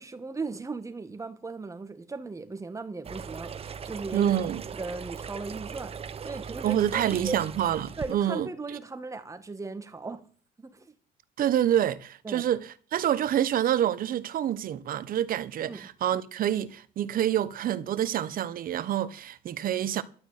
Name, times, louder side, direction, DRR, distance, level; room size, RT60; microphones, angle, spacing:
voice 1, 0.0-4.3 4.8-6.0 6.2-7.4 8.0-10.2 10.6-10.9 12.2-12.5 15.6-15.9, right 3 dB, 20° right, 2.0 m, -37 dB
sound 1, 3.0-8.1, right 6 dB, 35° right, 1.0 m, -39 dB
voice 2, 4.1-4.6 6.6-8.8 11.4-20.0, right 11 dB, 55° right, 1.2 m, -27 dB
12.5 x 6.3 x 9.3 m
cardioid pair, 110°, 17 cm